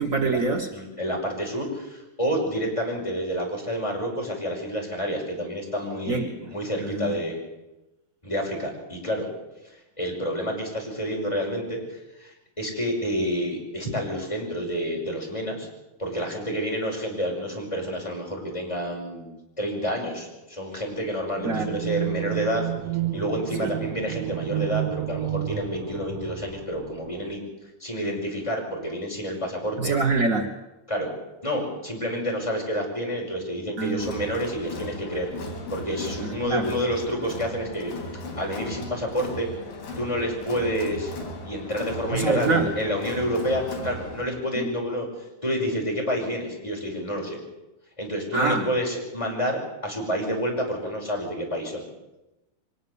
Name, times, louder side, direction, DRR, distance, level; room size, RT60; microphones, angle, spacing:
voice 1, 0.0-0.7 6.1-6.3 6.8-7.2 21.4-21.8 23.6-23.7 29.8-30.5 33.8-34.0 36.2-36.7 42.1-42.7 44.6-44.7 48.3-48.7, right 3 dB, 90° right, 4 dB, 0.7 m, -25 dB
voice 2, 0.7-7.4 8.2-9.3 10.0-15.7 16.0-19.3 19.6-22.7 23.1-27.4 27.8-29.9 30.9-31.1 31.4-35.3 35.7-37.9 38.4-39.5 40.0-41.1 41.4-45.1 45.4-47.4 48.0-51.8, equal, 10° left, -1 dB, 5.5 m, -29 dB
sound 1, 21.3-27.3, right 13 dB, 60° right, 1.8 m, -31 dB
Crowd, 34.0-44.2, left 1 dB, 75° left, 5.6 m, -37 dB
23.5 x 20.0 x 7.0 m, 1.0 s
omnidirectional pair, 4.1 m